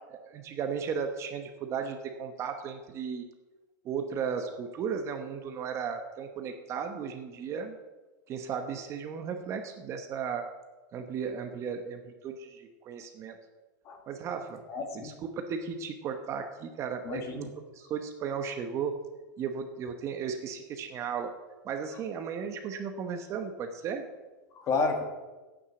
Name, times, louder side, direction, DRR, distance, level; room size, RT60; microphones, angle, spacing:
voice 1, 0.2-3.2 3.8-7.8 8.3-10.5 10.9-13.4 14.1-14.6 14.9-17.4 17.8-19.0 19.4-21.3 21.6-24.1, right 6 dB, 30° right, 6 dB, 1.0 m, -35 dB
voice 2, 14.7-15.1 17.0-17.5 24.5-25.0, left 4 dB, 30° left, 4 dB, 1.8 m, -31 dB
8.8 x 8.0 x 8.2 m, 1.2 s
supercardioid pair, 155°, 10 cm